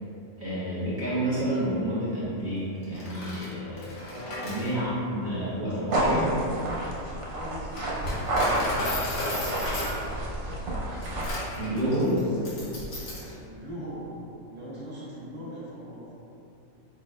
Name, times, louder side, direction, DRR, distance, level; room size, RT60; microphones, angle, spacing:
voice 1, 0.4-3.9 4.4-6.2 11.6-12.2, right 1 dB, 40° right, -11 dB, 1.2 m, -29 dB
Coin (dropping), 2.8-13.3, left 1 dB, 70° left, 1.4 m, -35 dB
voice 2, 4.0-6.7 7.3-8.9 11.8-12.9 13.4-16.2, right 1 dB, 10° right, -9 dB, 1.1 m, -42 dB
sound 1, 5.9-11.3, right 1 dB, 60° right, 1.0 m, -29 dB
5.2 x 4.0 x 2.4 m, 2.7 s
omnidirectional pair, 1.5 m